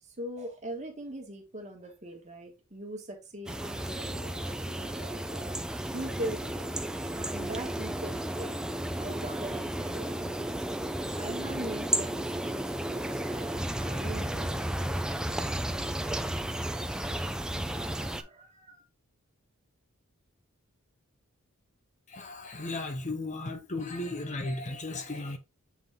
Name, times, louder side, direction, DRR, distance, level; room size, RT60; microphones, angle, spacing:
voice 1, 0.0-5.6 5.9-6.8 7.1-8.5 9.0-10.5 11.1-16.0 17.4-18.8, right 1 dB, 30° right, 1.5 m, -42 dB
sound 1, 3.5-18.2, right 1 dB, 5° right, 0.4 m, -33 dB
voice 2, 22.1-25.4, left 2 dB, 35° left, 0.7 m, -35 dB
7.1 x 3.9 x 3.5 m
head